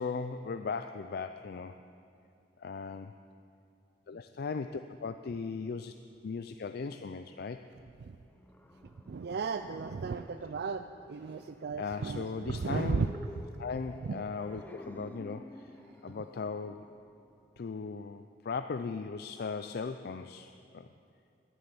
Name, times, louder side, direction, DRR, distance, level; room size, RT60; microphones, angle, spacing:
voice 1, 0.0-1.7 2.6-3.1 4.1-5.9 6.2-7.6 11.8-13.1 13.6-15.7 16.0-16.8 17.6-20.9, left 5 dB, 60° left, 9 dB, 0.4 m, -38 dB
sound 1, 8.1-17.9, left 1 dB, 10° left, 0.6 m, -52 dB
voice 2, 9.1-13.1, right 5 dB, 60° right, 9 dB, 0.4 m, -35 dB
13.0 x 10.0 x 7.8 m, 2.6 s
head